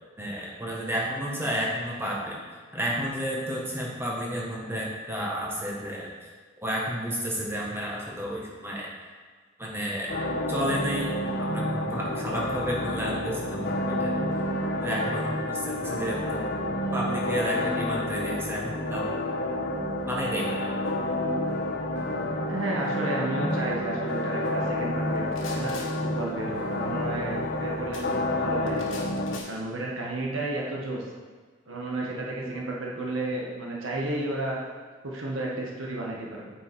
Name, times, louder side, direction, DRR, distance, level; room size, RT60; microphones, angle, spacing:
voice 1, 0.2-2.4 2.7-6.1 6.6-8.9 9.6-10.1 10.5-14.2 14.8-16.5 16.9-19.0 20.1-20.7, equal, 10° right, -3 dB, 1.5 m, -31 dB
sound 1, 10.1-29.4, left 1 dB, 60° left, 0.9 m, -29 dB
voice 2, 22.5-29.0 29.4-31.0 31.7-34.6 35.0-36.4, right 2 dB, 85° right, -2 dB, 1.4 m, -32 dB
sound 2, 25.1-25.9 27.9-28.1 28.7-29.5, left 3 dB, 80° left, 1.5 m, -42 dB
8.3 x 5.3 x 4.6 m, 1.5 s
head